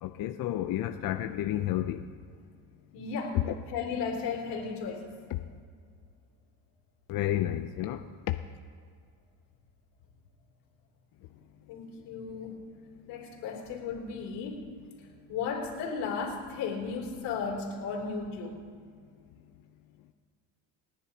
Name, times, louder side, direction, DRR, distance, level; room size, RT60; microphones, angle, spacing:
voice 1, 0.0-2.0 3.5-3.6 5.3-5.4 7.1-8.3, left 13 dB, 55° left, 7 dB, 0.6 m, -31 dB
voice 2, 2.9-3.4 3.7-5.1 11.7-12.6 13.1-14.7 15.0-18.6, left 5 dB, 85° left, -1 dB, 3.2 m, -35 dB
30.0 x 10.0 x 2.9 m, 2.2 s
cardioid pair, 115°, 40 cm